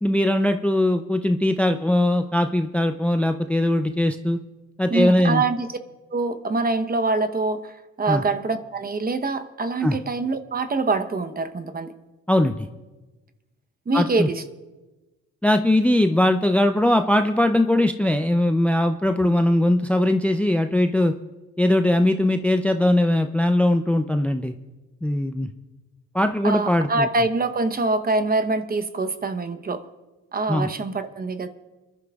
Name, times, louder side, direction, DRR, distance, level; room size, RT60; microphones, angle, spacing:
voice 1, 0.0-4.4 4.8-5.4 8.1-8.2 9.8-10.0 12.3-12.7 13.9-14.3 15.4-21.1 21.6-24.5 25.0-25.5 26.1-27.1 30.5-30.7, left 1 dB, 5° left, 7 dB, 0.5 m, -20 dB
voice 2, 4.9-5.7 6.1-11.9 13.9-14.4 26.4-29.9 30.3-31.5, right 3 dB, 30° right, 9 dB, 0.9 m, -24 dB
28.5 x 11.5 x 2.4 m, 1.2 s
cardioid pair, 90°, 30 cm